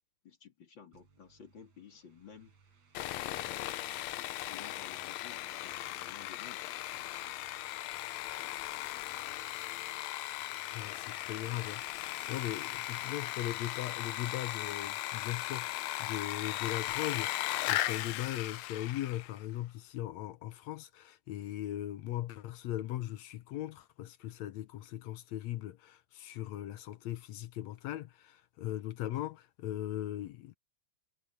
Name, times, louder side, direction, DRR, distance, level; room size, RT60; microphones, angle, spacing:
voice 1, 0.2-2.5 3.1-3.9 4.4-6.7, left 7 dB, 35° left, 3.0 m, -54 dB
sound 1, 0.9-13.2, right 5 dB, 55° right, 4.8 m, -66 dB
Sawing, 2.9-19.4, left 16 dB, 90° left, 1.5 m, -37 dB
voice 2, 10.7-15.7 16.0-30.5, left 13 dB, 75° left, 1.7 m, -39 dB
omnidirectional pair, 3.8 m